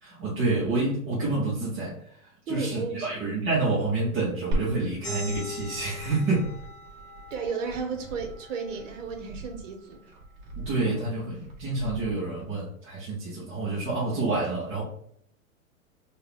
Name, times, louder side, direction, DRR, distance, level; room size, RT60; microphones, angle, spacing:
voice 1, 0.0-6.5 10.5-14.8, right 3 dB, 15° right, -8 dB, 0.5 m, -28 dB
voice 2, 2.5-3.1 7.3-10.0, right 5 dB, 60° right, 4 dB, 1.0 m, -33 dB
Glass, 4.5-12.5, right 1 dB, 35° right, 1.0 m, -39 dB
sound 1, 5.0-10.2, left 2 dB, 25° left, 0.7 m, -42 dB
4.0 x 2.3 x 3.4 m, 0.66 s
hypercardioid pair, 160°, 42 cm